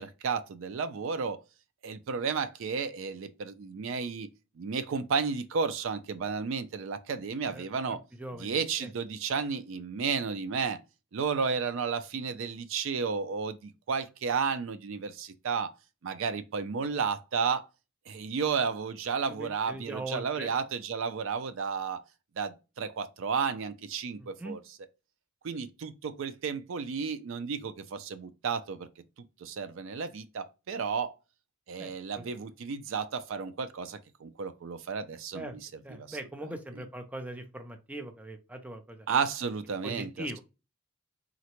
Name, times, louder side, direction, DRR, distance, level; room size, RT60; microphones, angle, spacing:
voice 1, 0.0-1.4 1.8-4.3 4.6-8.0 8.4-10.8 11.1-15.7 16.0-17.7 18.1-22.0 22.4-24.6 25.4-28.9 29.4-31.1 31.7-35.6 35.9-36.5 39.1-40.4, right 5 dB, 70° right, 0.4 m, -32 dB
voice 2, 7.5-8.9 19.3-20.5 24.2-24.6 31.8-32.2 35.3-35.6 35.8-39.1 39.8-40.4, right 1 dB, 5° right, 0.4 m, -41 dB
3.8 x 2.1 x 2.9 m
head